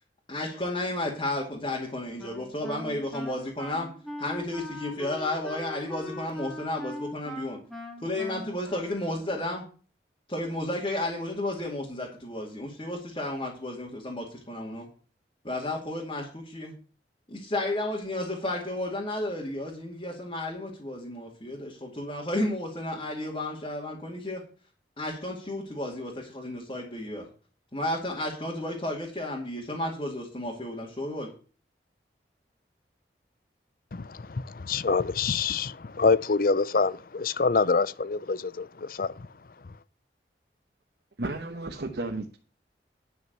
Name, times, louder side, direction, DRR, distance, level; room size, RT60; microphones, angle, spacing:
voice 1, 0.3-3.9 4.2-7.6 8.0-9.6 10.3-14.9 15.4-16.7 17.3-24.4 25.0-27.3 27.7-31.3, left 1 dB, 30° left, 2.5 m, -32 dB
Wind instrument woodwind instrument, 2.2-9.6, left 1 dB, ahead, 2.0 m, -41 dB
voice 2, 33.9-39.3, left 4 dB, 50° left, 0.5 m, -26 dB
voice 3, 41.2-42.4, right 2 dB, 65° right, 1.1 m, -33 dB
10.5 x 6.4 x 6.8 m
head